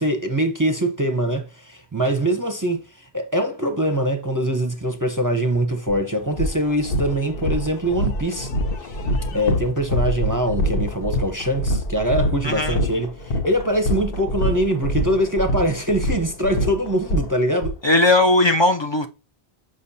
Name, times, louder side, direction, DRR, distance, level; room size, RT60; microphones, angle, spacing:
voice 1, 0.0-8.5 8.8-9.0 9.3-17.7, right 1 dB, 25° right, 0.6 m, -23 dB
sound 1, 5.9-6.0 6.3-17.7, equal, 65° left, 1.0 m, -25 dB
voice 2, 12.4-12.8 17.8-19.1, left 2 dB, 45° left, 0.3 m, -17 dB
7.0 x 5.2 x 2.7 m
omnidirectional pair, 1.0 m